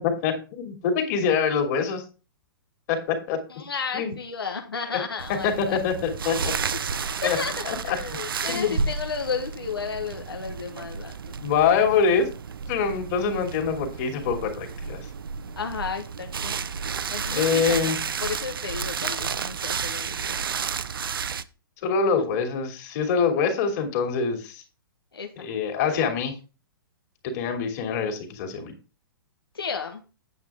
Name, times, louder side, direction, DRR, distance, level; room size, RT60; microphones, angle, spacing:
voice 1, 0.0-2.0 2.9-3.4 3.9-4.1 4.9-5.0 5.4-6.5 7.2-7.4 7.7-8.0 8.5-8.8 11.4-12.3 12.7-15.0 17.3-18.0 21.8-24.6 25.4-26.3 27.2-28.7, left 6 dB, 45° left, 3 dB, 2.8 m, -25 dB
voice 2, 3.5-5.8 7.4-11.2 15.6-16.5 17.1-17.9 18.2-20.6 25.1-25.5 29.5-30.0, left 6 dB, 85° left, 3 dB, 1.2 m, -33 dB
sound 1, 5.2-21.4, right 6 dB, 70° right, 0.6 m, -32 dB
9.0 x 7.8 x 3.5 m, 0.33 s
figure-of-eight pair, 115°, 12 cm